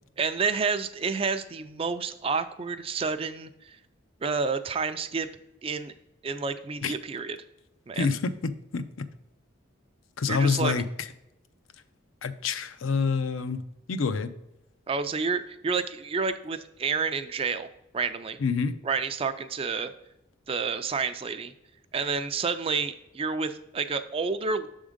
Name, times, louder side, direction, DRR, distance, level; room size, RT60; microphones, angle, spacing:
voice 1, 0.2-3.8 4.2-5.3 5.6-5.9 6.2-7.4 7.9-8.1 10.3-10.7 14.9-17.7 17.9-18.4 18.8-19.9 20.5-21.5 21.9-24.7, right 5 dB, 30° right, 10 dB, 0.4 m, -29 dB
voice 2, 7.9-9.1 10.2-10.9 12.2-13.6 13.9-14.3 18.4-18.7, left 5 dB, 85° left, 10 dB, 0.5 m, -27 dB
7.0 x 3.7 x 5.0 m, 0.89 s
head